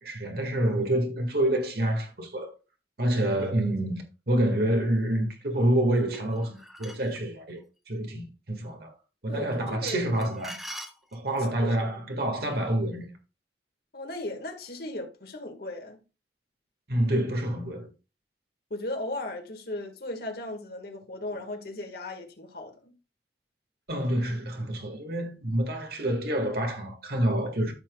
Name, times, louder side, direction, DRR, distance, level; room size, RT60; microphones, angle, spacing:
voice 1, 0.0-2.5 3.0-8.9 9.2-10.6 11.1-13.1 16.9-17.9 23.9-27.7, right 1 dB, 60° right, 2.0 m, -27 dB
sound 1, 6.1-7.2 9.9-11.5, equal, ahead, 0.8 m, -43 dB
voice 2, 9.3-10.2 11.6-12.1 13.9-16.0 18.7-23.0, left 1 dB, 60° left, 1.8 m, -37 dB
14.0 x 5.9 x 2.4 m
head